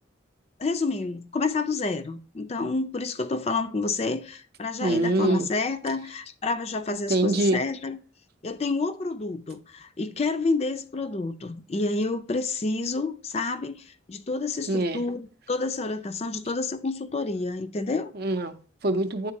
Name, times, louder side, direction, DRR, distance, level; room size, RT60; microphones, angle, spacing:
voice 1, 0.6-8.0 8.4-18.1, left 3 dB, 30° left, 0.4 m, -29 dB
voice 2, 4.8-5.5 7.1-7.6 14.7-15.0 18.1-19.3, right 2 dB, 50° right, 0.6 m, -24 dB
9.5 x 3.8 x 2.7 m
head